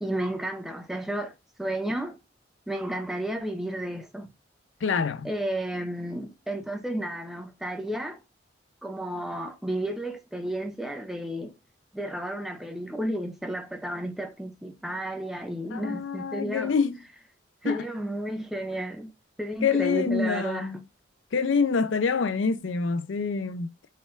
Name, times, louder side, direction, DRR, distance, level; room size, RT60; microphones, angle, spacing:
voice 1, 0.0-1.3 1.6-2.2 2.7-4.3 5.2-8.2 8.8-11.5 11.9-16.8 17.6-19.1 19.4-20.7, right 1 dB, ahead, 0.5 m, -32 dB
voice 2, 4.8-5.3 15.7-17.0 17.6-17.8 19.6-20.8 21.3-23.7, left 5 dB, 80° left, 0.5 m, -26 dB
4.2 x 2.4 x 3.7 m
head